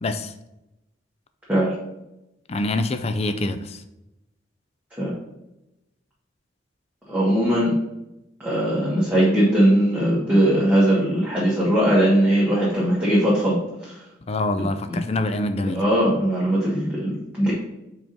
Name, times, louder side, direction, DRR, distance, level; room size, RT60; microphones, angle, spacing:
voice 1, 0.0-0.3 2.5-3.8 14.3-15.8, left 2 dB, 30° left, 0.4 m, -25 dB
voice 2, 7.1-7.7 8.4-14.0 14.6-15.0 15.7-17.5, right 1 dB, 10° right, 1.3 m, -20 dB
4.9 x 3.9 x 5.2 m
head